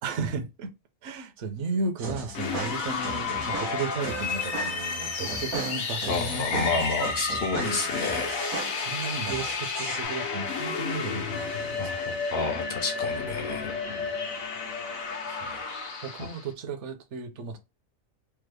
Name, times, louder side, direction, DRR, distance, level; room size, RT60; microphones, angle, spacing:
voice 1, 0.0-0.7 1.0-7.1 7.6-7.8 8.8-12.3 13.9-14.1 15.3-15.6 16.0-17.6, right 4 dB, 65° right, 0.9 m, -34 dB
sound 1, 2.0-10.0, right 4 dB, 90° right, 1.2 m, -38 dB
sound 2, 2.3-16.5, left 5 dB, 85° left, 1.2 m, -32 dB
voice 2, 6.1-8.4 11.8-13.7, left 4 dB, 60° left, 0.8 m, -30 dB
3.5 x 2.0 x 3.2 m
omnidirectional pair, 1.4 m